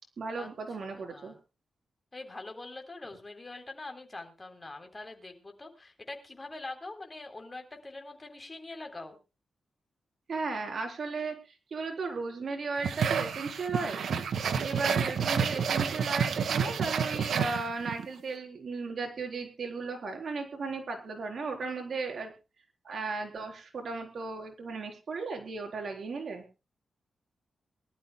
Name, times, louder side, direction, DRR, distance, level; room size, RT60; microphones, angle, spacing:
voice 1, 0.2-1.3 10.3-11.4 11.7-14.1 14.6-22.3 22.8-26.6, right 4 dB, 55° right, 3 dB, 4.1 m, -35 dB
voice 2, 0.9-1.4 2.1-9.2 14.8-15.0, left 2 dB, 20° left, 4 dB, 3.7 m, -44 dB
sound 1, 12.8-18.1, right 6 dB, 80° right, 1.7 m, -29 dB
23.0 x 13.0 x 2.3 m, 0.30 s
wide cardioid pair, 110°, 0 cm